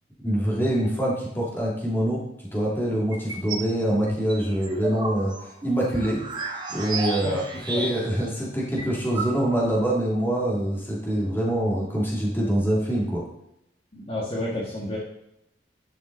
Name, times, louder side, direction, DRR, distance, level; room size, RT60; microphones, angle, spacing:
voice 1, 0.2-2.2 2.5-7.4 7.7-13.2, right 1 dB, 15° left, -5 dB, 2.7 m, -25 dB
sound 1, 3.1-3.7 4.1-8.3 8.5-8.6 8.8-9.8, right 3 dB, 25° right, 1.4 m, -33 dB
voice 2, 13.9-15.0, left 1 dB, 35° left, -5 dB, 1.8 m, -30 dB
11.5 x 6.1 x 4.1 m, 0.82 s
head